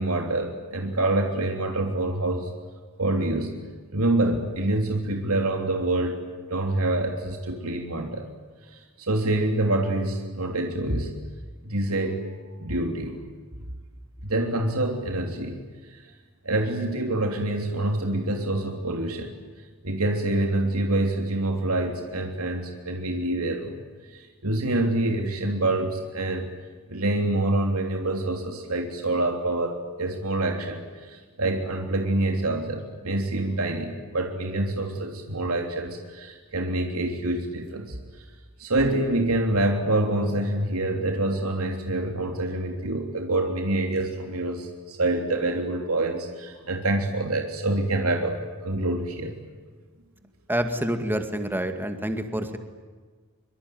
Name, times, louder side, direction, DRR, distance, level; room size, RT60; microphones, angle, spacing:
voice 1, 0.0-2.5 3.0-3.5 3.9-6.2 6.5-8.2 8.7-11.1 11.6-12.2 12.6-13.2 14.2-15.6 15.9-16.0 16.4-19.3 19.8-23.8 24.1-26.5 26.9-38.3 38.6-48.4 48.6-49.4, right 2 dB, 90° right, 3 dB, 3.3 m, -26 dB
voice 2, 50.5-52.6, right 1 dB, 10° right, 7 dB, 2.1 m, -27 dB
24.5 x 24.5 x 9.5 m, 1.5 s
head